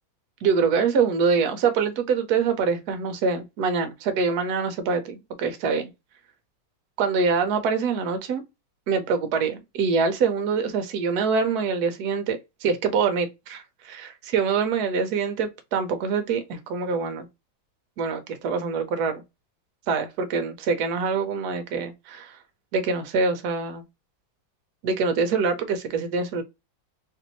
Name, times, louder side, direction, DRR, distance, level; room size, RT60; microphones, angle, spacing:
voice 1, 0.4-5.9 7.0-8.4 8.9-17.3 18.0-19.2 19.9-22.4 22.7-23.8 24.8-26.4, right 5 dB, 65° right, 1.0 m, -25 dB
3.2 x 2.6 x 2.9 m
omnidirectional pair, 2.1 m